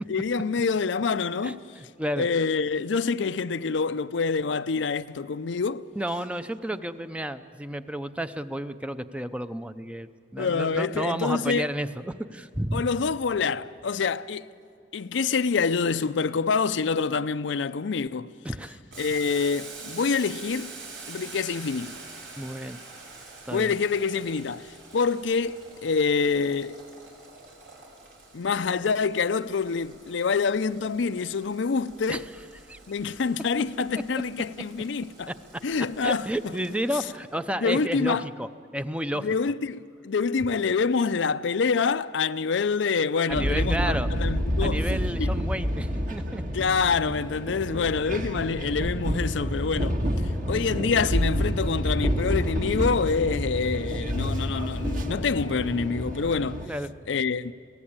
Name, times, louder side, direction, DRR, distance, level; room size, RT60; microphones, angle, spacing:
voice 1, 0.1-1.6 2.2-5.9 10.4-11.7 12.7-14.5 14.9-18.3 19.0-20.7 21.1-21.9 23.5-26.8 28.3-32.3 32.9-35.3 35.6-36.5 37.6-38.3 39.1-44.8 45.2-45.3 46.5-50.0 50.5-56.6 57.1-57.5, left 5 dB, 70° left, 0.5 m, -26 dB
voice 2, 1.4-2.3 6.0-12.8 18.4-18.8 22.4-22.8 23.5-23.7 32.1-32.2 32.7-32.8 35.3-35.4 36.0-38.5 38.7-39.3 43.3-44.1 44.6-46.4 56.7-56.9, equal, 5° right, 0.6 m, -31 dB
Boiling, 18.9-37.3, right 3 dB, 75° right, 5.1 m, -46 dB
sound 1, 43.3-56.7, equal, 45° right, 1.8 m, -28 dB
23.0 x 17.0 x 8.7 m
head